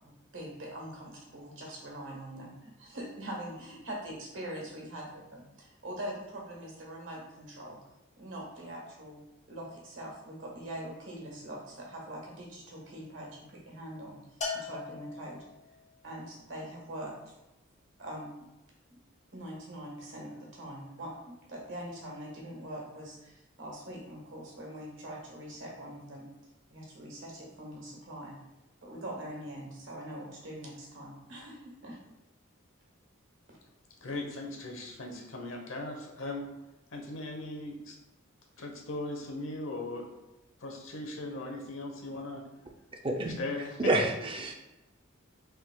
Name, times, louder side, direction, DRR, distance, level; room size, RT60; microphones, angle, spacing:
voice 1, 0.0-7.8 8.2-9.2 9.5-14.1 14.6-15.4 16.0-17.4 18.0-18.3 18.9-19.0 19.3-26.2 26.7-28.4 28.8-32.0 33.5-33.6, right 1 dB, 65° right, -2 dB, 1.4 m, -43 dB
Bell, 14.4-15.8, left 4 dB, 35° left, 0.6 m, -38 dB
voice 2, 34.0-36.5 36.9-38.0 38.6-40.2 40.6-42.4 43.4-44.1, left 2 dB, 70° left, 1 dB, 0.9 m, -38 dB
voice 3, 43.0-43.4 43.8-44.5, right 2 dB, 25° right, 2 dB, 0.5 m, -28 dB
5.5 x 3.7 x 2.3 m, 1.0 s
head